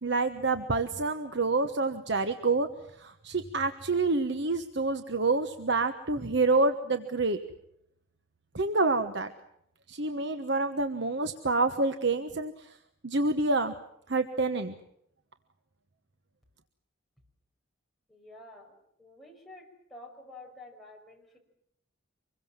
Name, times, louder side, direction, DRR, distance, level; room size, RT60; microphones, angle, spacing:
voice 1, 0.0-2.7 3.0-7.4 8.5-9.3 9.9-12.8 13.0-13.7 14.1-14.7, right 3 dB, 60° right, 8 dB, 1.2 m, -27 dB
voice 2, 18.1-21.4, left 2 dB, ahead, -1 dB, 5.7 m, -50 dB
26.0 x 22.0 x 7.5 m, 0.75 s
head